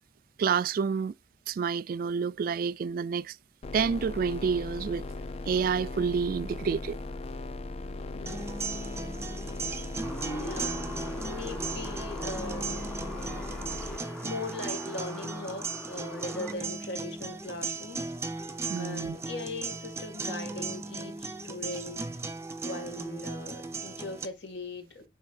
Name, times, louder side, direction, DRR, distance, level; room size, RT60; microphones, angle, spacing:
voice 1, 0.4-1.1 1.5-3.4 3.7-5.0 5.5-7.0 18.7-19.2, right 6 dB, 50° right, 0.3 m, -28 dB
sound 1, 3.6-14.0, left 2 dB, 35° left, 0.4 m, -38 dB
voice 2, 8.1-8.7 10.0-12.9 14.2-18.1 18.8-22.1 22.6-25.1, left 2 dB, 75° left, 2.3 m, -39 dB
sound 2, 8.3-24.3, right 3 dB, 15° right, 0.8 m, -37 dB
sound 3, 10.0-16.6, equal, 5° left, 1.5 m, -43 dB
10.5 x 4.0 x 2.6 m
head